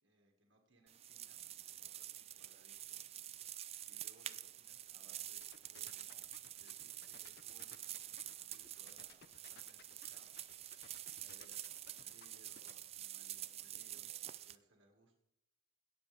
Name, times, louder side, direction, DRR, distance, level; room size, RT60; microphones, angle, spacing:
voice 1, 0.0-3.1 3.8-10.4 11.2-15.1, right 1 dB, 65° right, 1 dB, 1.8 m, -69 dB
sound 1, 0.9-14.6, right 12 dB, 30° right, 0.3 m, -48 dB
sound 2, 5.4-12.7, left 7 dB, 55° left, 0.6 m, -61 dB
16.5 x 7.3 x 3.5 m, 0.80 s
head